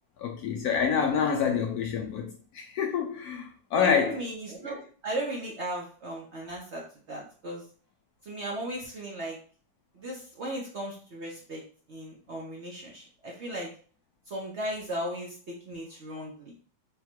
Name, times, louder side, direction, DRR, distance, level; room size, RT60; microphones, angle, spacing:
voice 1, 0.2-4.3, left 7 dB, 70° left, 0.9 m, -27 dB
voice 2, 3.7-7.6 8.3-9.4 9.9-11.6 11.9-13.7 14.3-16.5, right 1 dB, 55° right, 0.8 m, -36 dB
3.6 x 2.3 x 4.4 m
omnidirectional pair, 1.9 m